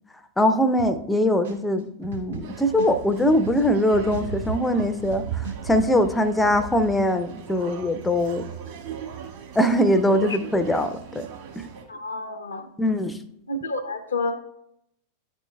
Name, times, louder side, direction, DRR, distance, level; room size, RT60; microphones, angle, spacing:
voice 1, 0.4-5.2 5.6-8.4 9.6-11.3 11.6-11.7 12.8-13.2, equal, 10° left, 11 dB, 0.5 m, -22 dB
sound 1, 0.8-1.1 1.4-3.8 4.1-5.9, right 7 dB, 75° right, 1.7 m, -36 dB
sound 2, 2.4-11.8, right 7 dB, 45° right, 1.5 m, -37 dB
voice 2, 11.9-12.6 13.5-14.3, left 2 dB, 75° left, 7 dB, 0.6 m, -29 dB
11.0 x 4.4 x 2.2 m, 0.75 s
figure-of-eight pair, 90°, 0 cm